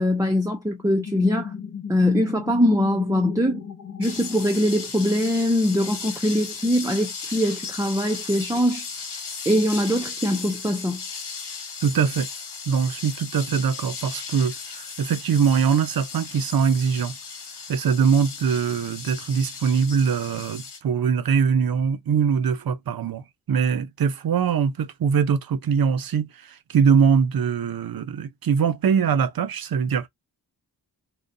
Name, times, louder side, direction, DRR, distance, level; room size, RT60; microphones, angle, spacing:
voice 1, 0.0-1.5 1.9-3.6 4.0-8.9 9.5-11.0, left 1 dB, 10° right, 0.5 m, -22 dB
sound 1, 0.8-5.2, left 6 dB, 50° left, 0.7 m, -36 dB
sound 2, 4.0-20.8, left 5 dB, 85° left, 1.2 m, -36 dB
voice 2, 11.8-12.3 12.7-17.2 17.7-23.2 23.5-26.3 26.7-30.1, right 6 dB, 60° right, 0.6 m, -22 dB
3.8 x 2.2 x 2.6 m
wide cardioid pair, 135°, 40 cm